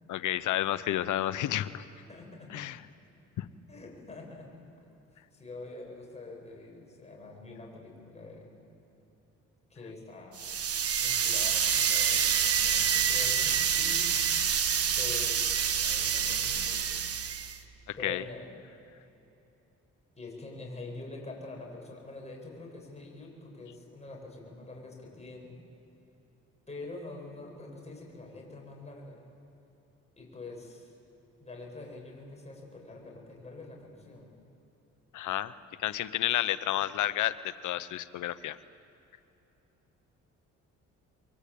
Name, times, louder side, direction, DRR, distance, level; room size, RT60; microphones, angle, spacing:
voice 1, 0.1-1.8 2.5-2.8 3.4-3.5 16.4-16.5 17.9-18.2 35.1-35.5 35.8-38.6, left 13 dB, 80° left, 14 dB, 0.9 m, -31 dB
voice 2, 2.1-2.7 3.7-4.5 5.3-8.5 9.7-10.5 11.0-14.1 15.0-15.6 15.8-17.3 18.0-18.5 20.2-25.6 26.7-29.2 30.2-30.9 31.4-34.3, left 2 dB, 20° left, -1 dB, 7.9 m, -45 dB
sound 1, 10.4-17.6, right 7 dB, 50° right, 1.5 m, -27 dB
28.5 x 24.0 x 8.6 m, 3.0 s
cardioid pair, 90°, 30 cm